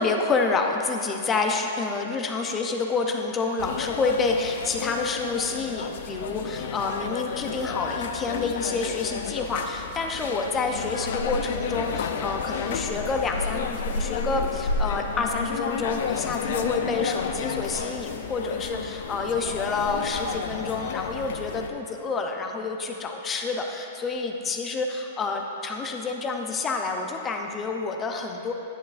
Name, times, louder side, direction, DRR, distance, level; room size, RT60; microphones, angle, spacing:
voice 1, 0.0-28.5, left 4 dB, 20° left, 3 dB, 0.7 m, -28 dB
sound 1, 3.6-21.7, left 5 dB, 70° left, 0.5 m, -31 dB
10.0 x 8.4 x 2.5 m, 2.8 s
hypercardioid pair, 125°, 0 cm